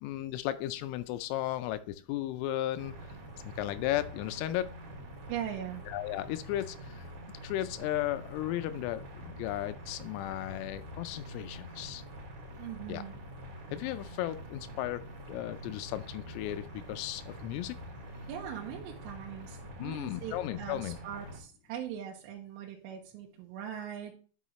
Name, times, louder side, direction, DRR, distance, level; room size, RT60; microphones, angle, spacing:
voice 1, 0.0-2.9 3.4-4.7 5.9-7.1 7.4-12.0 12.9-13.0 13.7-15.0 15.3-17.8 19.8-21.0, left 14 dB, 85° left, 11 dB, 3.2 m, -35 dB
sound 1, 2.8-21.4, equal, 55° right, 3.1 m, -46 dB
voice 2, 5.3-5.9 12.6-13.2 18.3-24.1, right 9 dB, 80° right, -1 dB, 3.3 m, -41 dB
9.6 x 6.3 x 3.1 m, 0.39 s
omnidirectional pair, 5.9 m